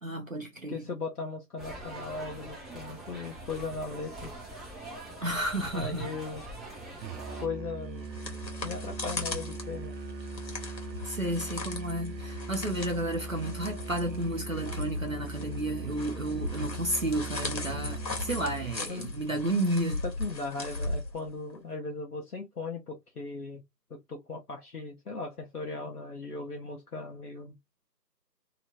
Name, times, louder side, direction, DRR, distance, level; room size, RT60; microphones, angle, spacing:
voice 1, 0.0-0.9 5.2-6.1 11.1-20.0, right 1 dB, 55° right, 0.6 m, -32 dB
voice 2, 0.7-4.3 5.7-6.4 7.4-8.0 8.6-9.9 18.9-19.1 20.0-23.6 23.9-27.6, left 3 dB, 60° left, 0.9 m, -38 dB
sound 1, 1.6-7.5, right 1 dB, ahead, 0.6 m, -43 dB
Musical instrument, 7.0-18.9, right 2 dB, 85° right, 0.7 m, -40 dB
sound 2, 7.8-21.6, left 2 dB, 85° left, 1.3 m, -38 dB
2.9 x 2.2 x 2.6 m
figure-of-eight pair, 180°, 50 cm